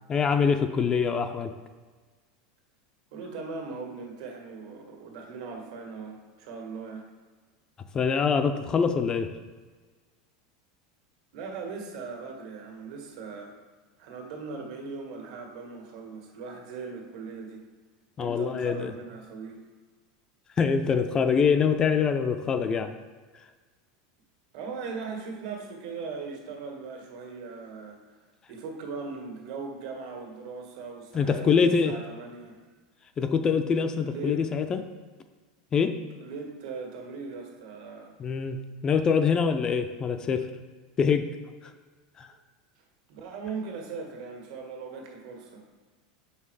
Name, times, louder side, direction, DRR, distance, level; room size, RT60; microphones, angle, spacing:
voice 1, 0.1-1.5 7.9-9.3 18.2-18.9 20.6-22.9 31.1-31.9 33.2-34.8 35.7-36.0 38.2-38.6 38.8-40.5 41.0-41.3 42.2-42.3, left 6 dB, 20° left, 8 dB, 0.4 m, -24 dB
voice 2, 3.1-7.1 11.3-13.5 14.0-17.6 18.2-19.6 24.5-28.0 28.5-32.6 33.9-34.5 36.2-38.2 43.1-45.6, right 4 dB, 65° right, 1 dB, 1.8 m, -39 dB
6.5 x 5.6 x 4.8 m, 1.4 s
supercardioid pair, 155°, 4 cm